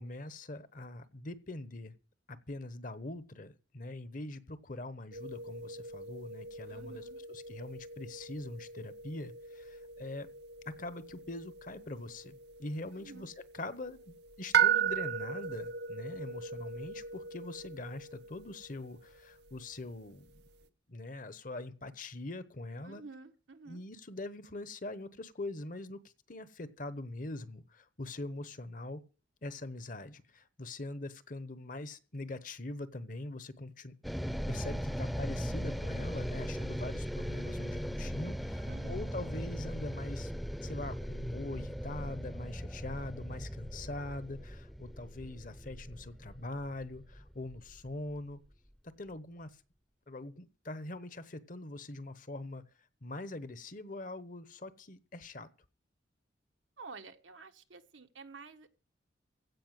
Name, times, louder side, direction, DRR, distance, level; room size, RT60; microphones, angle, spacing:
voice 1, 0.0-1.9 2.3-10.3 10.7-20.4 20.9-23.0 23.7-26.0 26.3-29.0 29.4-33.9 34.5-40.3 40.6-48.4 49.0-49.6 50.1-52.6 53.0-55.5, left 2 dB, 45° left, 1.0 m, -43 dB
sound 1, 5.1-20.6, right 7 dB, 60° right, 0.8 m, -37 dB
voice 2, 6.7-7.2 12.9-13.3 22.8-23.8 38.7-39.1 56.8-58.7, right 4 dB, 80° right, 1.4 m, -50 dB
sound 2, 34.0-48.3, equal, ahead, 0.7 m, -39 dB
16.0 x 5.6 x 9.1 m
head